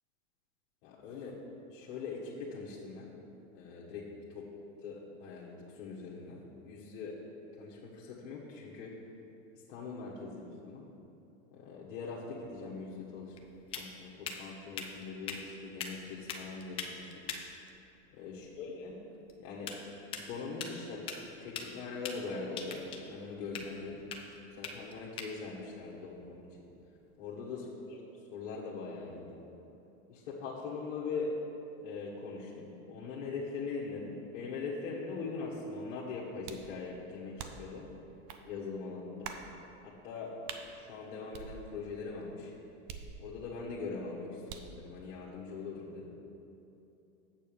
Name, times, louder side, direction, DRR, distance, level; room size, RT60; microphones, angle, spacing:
voice 1, 0.8-1.4 1.7-3.1 3.5-4.4 4.8-7.2 7.6-8.9 9.5-10.8 11.5-13.4 13.8-17.1 18.1-18.9 19.4-19.8 20.3-24.0 24.6-26.7 27.2-28.0 28.3-29.4 30.1-31.4 31.8-37.9 38.5-39.3 39.8-40.4 40.7-42.5 43.2-46.2, left 4 dB, 55° left, -6 dB, 1.4 m, -41 dB
sound 1, 12.4-27.2, left 6 dB, 15° left, 0.3 m, -45 dB
sound 2, 36.5-36.7 37.4-37.8 38.3-38.4 39.2-39.5 40.5-40.7 41.3-42.0 42.9-43.6 44.5-44.8, right 6 dB, 40° right, 0.6 m, -45 dB
7.8 x 4.4 x 7.0 m, 2.9 s
supercardioid pair, 135°, 37 cm